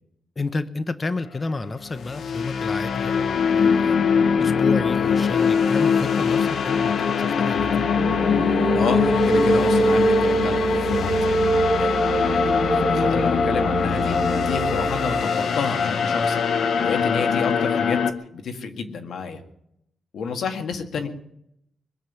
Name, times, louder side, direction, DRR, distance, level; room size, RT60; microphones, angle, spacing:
voice 1, 0.4-4.0 4.4-7.9, left 3 dB, 25° left, 13 dB, 0.7 m, -30 dB
sound 1, 1.9-18.1, left 6 dB, 55° left, 0.9 m, -22 dB
sound 2, 7.6-15.3, right 8 dB, 45° right, 0.6 m, -36 dB
sound 3, 8.0-15.4, right 3 dB, 25° right, 1.4 m, -24 dB
voice 2, 8.7-11.3 11.8-14.2 14.4-16.4 16.8-18.0 18.3-19.4 20.1-21.1, left 5 dB, 75° left, 6 dB, 1.8 m, -30 dB
21.5 x 7.3 x 9.3 m, 0.76 s
wide cardioid pair, 180°, 0 cm